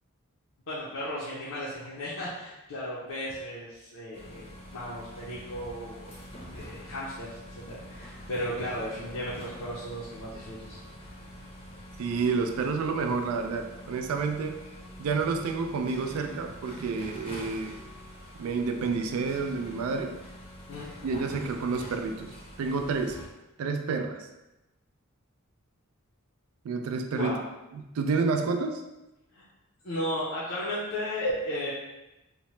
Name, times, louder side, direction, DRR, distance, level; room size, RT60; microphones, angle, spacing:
voice 1, 0.7-6.2 6.5-11.1 20.7-20.9 27.1-27.4 29.3-29.5 29.8-31.7, equal, 70° left, -7 dB, 0.6 m, -35 dB
sound 1, 4.1-23.3, equal, 25° left, 0.6 m, -45 dB
voice 2, 12.0-14.6 15.0-17.8 18.4-20.2 21.0-23.2 23.6-24.3 26.6-27.4 27.7-28.8, right 4 dB, 75° right, 5 dB, 0.3 m, -29 dB
2.8 x 2.1 x 3.0 m, 0.98 s
head